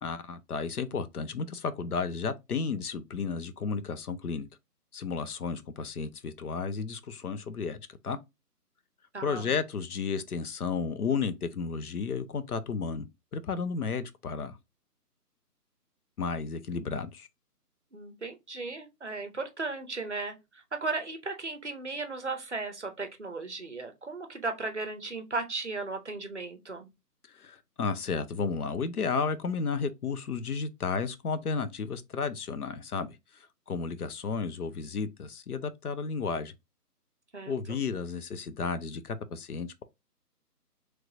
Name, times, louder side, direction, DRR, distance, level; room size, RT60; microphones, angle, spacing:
voice 1, 0.0-4.5 4.9-8.2 9.2-13.1 13.3-14.6 16.2-17.3 27.3-36.5 37.5-39.8, left 5 dB, 65° left, 0.6 m, -33 dB
voice 2, 9.1-9.5 17.9-26.9 37.3-37.5, right 3 dB, 45° right, 0.6 m, -36 dB
3.2 x 3.1 x 2.5 m
hypercardioid pair, 180°, 48 cm